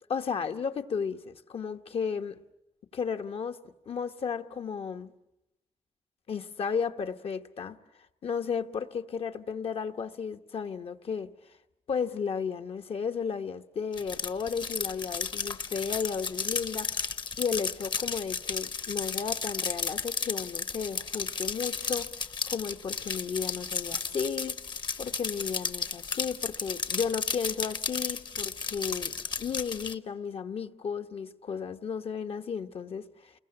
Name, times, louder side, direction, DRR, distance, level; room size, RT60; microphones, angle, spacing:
voice 1, 0.1-2.4 2.9-3.6 3.9-5.1 6.3-11.3 11.9-17.0 17.4-24.5 25.0-33.3, left 6 dB, 70° left, 1.2 m, -34 dB
sound 1, 13.9-29.9, left 5 dB, 45° left, 1.0 m, -34 dB
29.0 x 21.5 x 8.7 m
wide cardioid pair, 115°, 10 cm